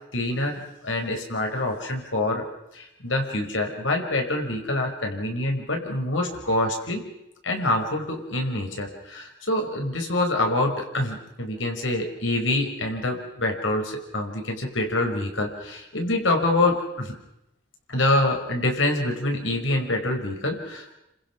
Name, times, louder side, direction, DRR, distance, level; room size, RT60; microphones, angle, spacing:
voice 1, 0.1-2.5 2.7-7.0 7.4-17.1 17.9-20.9, left 2 dB, 90° left, 3 dB, 5.5 m, -26 dB
29.0 x 26.0 x 6.2 m, 0.85 s
head